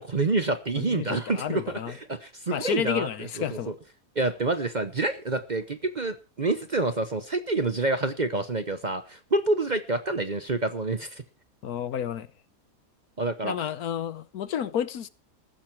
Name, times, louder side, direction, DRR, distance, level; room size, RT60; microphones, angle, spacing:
voice 1, 0.0-3.7 4.2-11.2 13.2-13.7, right 2 dB, 35° right, 0.8 m, -28 dB
voice 2, 0.8-1.9 2.5-3.7 11.6-12.3 13.4-15.1, left 9 dB, 75° left, 1.4 m, -31 dB
15.0 x 12.0 x 4.6 m
omnidirectional pair, 1.6 m